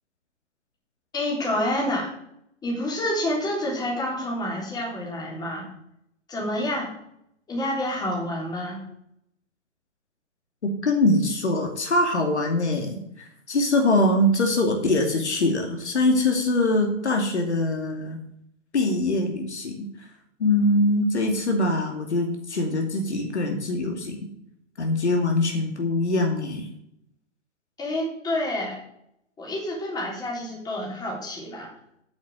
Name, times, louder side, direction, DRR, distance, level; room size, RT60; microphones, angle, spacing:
voice 1, 1.1-2.1 2.6-5.7 6.3-6.9 7.5-8.8 27.8-28.8 29.4-31.7, left 1 dB, 10° left, -2 dB, 3.6 m, -28 dB
voice 2, 10.6-18.2 18.7-19.8 20.4-24.2 24.8-26.7, left 2 dB, 60° left, 2 dB, 2.6 m, -23 dB
9.3 x 7.2 x 7.6 m, 0.75 s
figure-of-eight pair, 120°, 37 cm